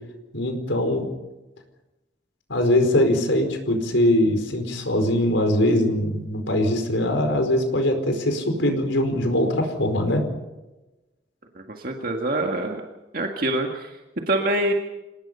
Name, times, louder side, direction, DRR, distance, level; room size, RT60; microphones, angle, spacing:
voice 1, 0.3-1.0 2.5-10.2, left 1 dB, 85° left, 5 dB, 4.8 m, -22 dB
voice 2, 11.6-12.8 13.1-14.0 14.3-14.7, right 1 dB, 50° right, 2 dB, 1.9 m, -25 dB
27.5 x 18.5 x 5.6 m, 1.0 s
head